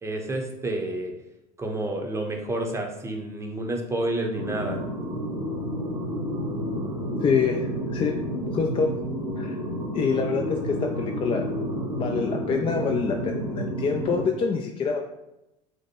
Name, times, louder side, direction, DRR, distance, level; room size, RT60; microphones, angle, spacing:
voice 1, 0.0-1.1 1.6-4.8, right 1 dB, 15° right, 2 dB, 0.8 m, -29 dB
sound 1, 4.3-14.2, equal, 90° right, 0.8 m, -30 dB
voice 2, 7.2-8.2 8.5-8.9 9.4-9.6 9.9-11.4 11.9-15.0, left 5 dB, 25° left, 3 dB, 0.4 m, -26 dB
4.8 x 2.1 x 4.4 m, 0.90 s
figure-of-eight pair, 75°, 21 cm